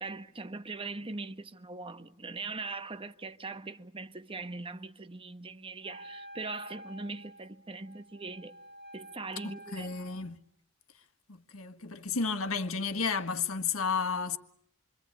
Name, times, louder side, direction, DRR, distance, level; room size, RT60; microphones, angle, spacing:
voice 1, 0.0-8.5 8.9-9.9, right 3 dB, 25° right, 1.1 m, -41 dB
Wind instrument woodwind instrument, 5.8-10.4, right 1 dB, 50° right, 1.9 m, -50 dB
voice 2, 9.4-10.4 11.3-14.4, left 5 dB, 75° left, 1.6 m, -32 dB
28.0 x 24.5 x 8.4 m
head